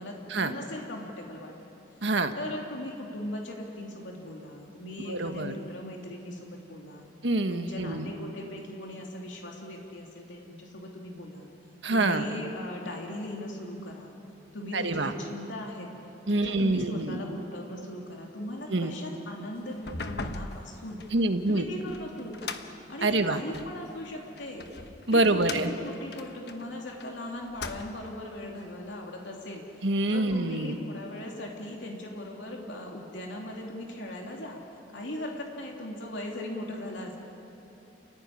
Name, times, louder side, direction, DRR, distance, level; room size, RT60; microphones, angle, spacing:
voice 1, 0.0-1.5 2.4-7.1 7.5-11.5 11.9-14.1 14.5-15.9 16.3-21.0 21.5-22.6 22.9-24.7 25.1-29.6 30.1-34.6 34.9-37.2, left 1 dB, 85° left, 0 dB, 2.9 m, -39 dB
voice 2, 2.0-2.3 5.1-5.5 7.2-8.1 11.8-12.3 14.7-15.1 16.3-17.2 18.7-18.9 21.1-21.6 23.0-23.4 25.1-25.7 29.8-30.8, right 2 dB, 75° right, 7 dB, 1.4 m, -26 dB
sound 1, 19.7-23.8 24.4-27.1 27.4-28.2, left 3 dB, 60° left, 1.2 m, -40 dB
28.5 x 16.0 x 9.9 m, 2.9 s
head